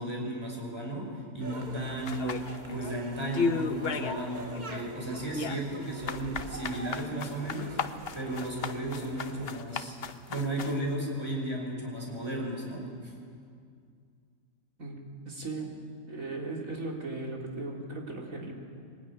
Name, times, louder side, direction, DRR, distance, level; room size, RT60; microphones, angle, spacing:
voice 1, 0.0-2.4 2.7-7.8 8.1-9.9 10.3-13.1, right 1 dB, 20° right, -1 dB, 5.2 m, -34 dB
sound 1, 1.4-9.6, right 2 dB, 35° right, 1.5 m, -45 dB
sound 2, 2.1-3.0 3.3-4.2 4.5-10.8, left 5 dB, 50° left, 1.0 m, -34 dB
voice 2, 14.8-18.5, right 2 dB, 70° right, -1 dB, 3.9 m, -37 dB
23.0 x 19.5 x 10.0 m, 2.2 s
omnidirectional pair, 1.5 m